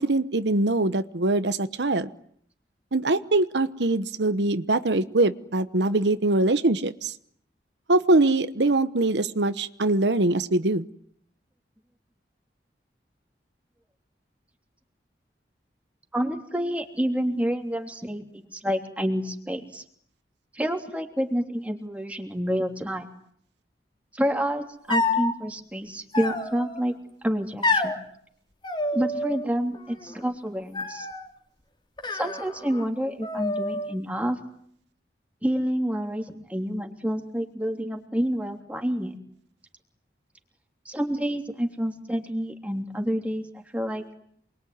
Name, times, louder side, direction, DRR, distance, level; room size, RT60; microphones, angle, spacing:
voice 1, 0.0-2.1 2.9-7.1 7.9-10.9, right 2 dB, 85° right, 12 dB, 1.1 m, -23 dB
voice 2, 16.1-19.8 20.5-23.1 24.1-26.9 27.2-27.9 28.9-31.1 32.1-34.4 35.4-39.1 40.8-44.0, equal, 10° right, 3 dB, 3.2 m, -28 dB
sound 1, 24.9-25.3 26.1-26.8 27.6-28.0 28.6-29.5 29.7-30.3 30.7-31.3 32.0-32.9 33.2-34.0, left 2 dB, 25° left, 3.1 m, -28 dB
28.5 x 22.5 x 9.5 m, 0.66 s
head